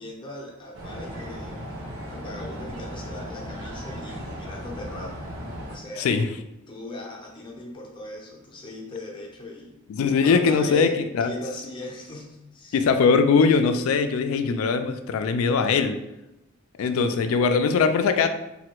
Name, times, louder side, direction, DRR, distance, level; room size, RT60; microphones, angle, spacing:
voice 1, 0.0-1.6 2.1-5.2 5.7-6.1 6.7-9.8 10.2-12.8, left 2 dB, 25° left, -2 dB, 0.5 m, -39 dB
sound 1, 0.7-5.8, equal, 80° right, 0.7 m, -36 dB
voice 2, 6.0-6.3 9.9-10.9 11.2-11.3 12.7-16.0 16.8-18.3, left 5 dB, 75° left, 8 dB, 0.3 m, -21 dB
3.2 x 2.2 x 2.9 m, 0.92 s
head